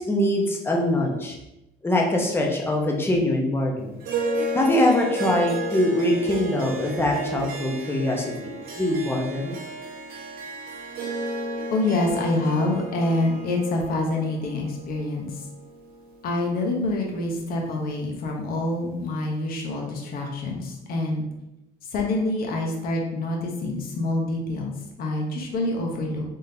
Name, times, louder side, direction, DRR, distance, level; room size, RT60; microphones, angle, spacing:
voice 1, 0.0-1.4 1.8-3.9 4.5-9.6, left 1 dB, 15° left, 0 dB, 0.8 m, -23 dB
Harp, 4.0-16.6, right 1 dB, 65° right, 0.9 m, -33 dB
voice 2, 11.7-15.3 16.2-21.2 21.9-26.2, left 2 dB, 60° left, 0 dB, 0.9 m, -26 dB
3.6 x 3.5 x 2.8 m, 0.92 s
cardioid pair, 110°, 17 cm